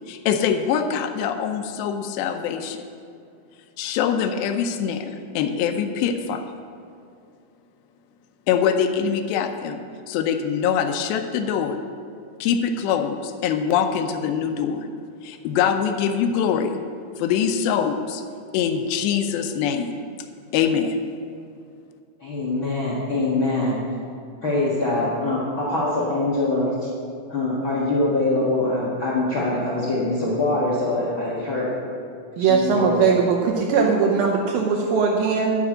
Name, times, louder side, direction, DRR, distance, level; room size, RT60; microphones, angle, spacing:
voice 1, 0.1-2.8 3.8-6.4 8.5-11.8 12.4-14.9 15.2-16.8 17.2-18.2 18.5-19.9 20.5-21.0, left 7 dB, 80° left, 7 dB, 2.8 m, -23 dB
voice 2, 22.2-23.8 24.4-26.7 27.3-31.7 32.4-33.0, left 2 dB, 60° left, -6 dB, 1.3 m, -23 dB
voice 3, 32.4-35.6, right 5 dB, 75° right, 0 dB, 2.2 m, -20 dB
10.5 x 6.0 x 8.5 m, 2.4 s
omnidirectional pair, 5.0 m